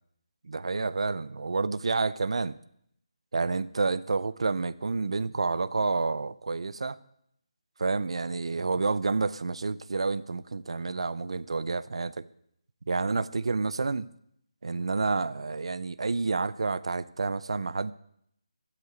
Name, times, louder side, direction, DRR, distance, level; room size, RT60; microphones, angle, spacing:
voice 1, 0.4-2.5 3.3-7.0 7.8-12.2 12.9-14.1 14.6-17.9, right 4 dB, 65° right, 0.6 m, -29 dB
12.5 x 8.3 x 7.9 m
figure-of-eight pair, 170°, 3 cm